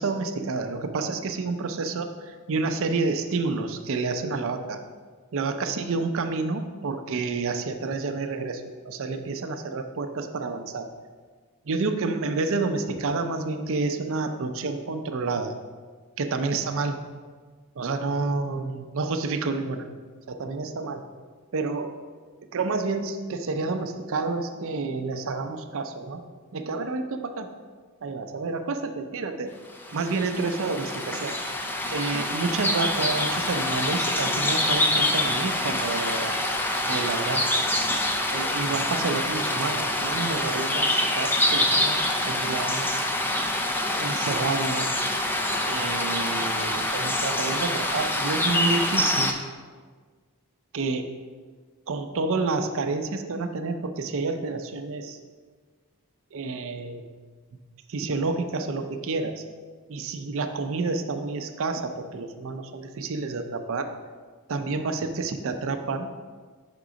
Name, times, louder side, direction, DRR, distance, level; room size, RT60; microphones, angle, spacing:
voice 1, 0.0-4.8 5.3-10.9 11.7-15.5 16.2-17.0 17.8-19.9 20.3-21.0 21.5-21.9 22.5-26.2 26.5-27.5 28.0-29.5 29.9-31.4 31.9-36.4 36.8-37.6 38.3-42.9 44.0-45.0 45.7-49.4 50.7-51.1 51.9-55.2 56.3-57.0 57.9-59.4 59.9-63.9 64.5-66.1, right 3 dB, 60° right, 7 dB, 0.5 m, -29 dB
sound 1, 29.8-49.3, left 1 dB, 10° left, 0.3 m, -26 dB
5.9 x 3.7 x 5.0 m, 1.5 s
head